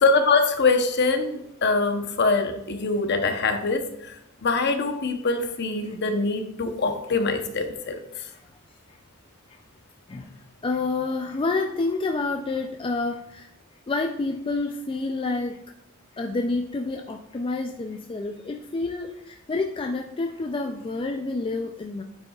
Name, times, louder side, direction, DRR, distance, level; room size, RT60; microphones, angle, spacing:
voice 1, 0.0-8.0, left 3 dB, 55° left, 6 dB, 0.8 m, -23 dB
voice 2, 10.1-13.5 13.9-15.6 16.1-22.0, left 3 dB, 25° left, 4 dB, 0.3 m, -29 dB
8.9 x 6.9 x 2.3 m, 0.80 s
head